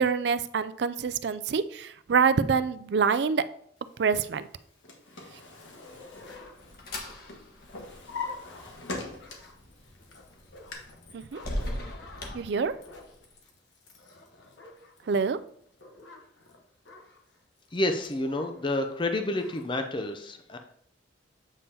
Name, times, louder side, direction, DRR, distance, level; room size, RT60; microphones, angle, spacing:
voice 1, 0.0-3.4 4.0-4.5 11.1-11.4 12.3-12.7 15.1-15.4, right 5 dB, 60° right, 14 dB, 0.4 m, -26 dB
Drawer open or close, 4.5-7.0 7.3-9.6 10.1-10.7, left 3 dB, 85° left, 1.5 m, -40 dB
sound 1, 5.6-18.8 19.0-19.1 19.3-19.7, left 3 dB, 70° left, 1.2 m, -52 dB
sound 2, 5.9-13.2, left 1 dB, 55° left, 1.4 m, -41 dB
voice 2, 17.7-20.6, left 1 dB, 25° left, 6 dB, 0.5 m, -29 dB
8.2 x 5.4 x 2.8 m, 0.65 s
head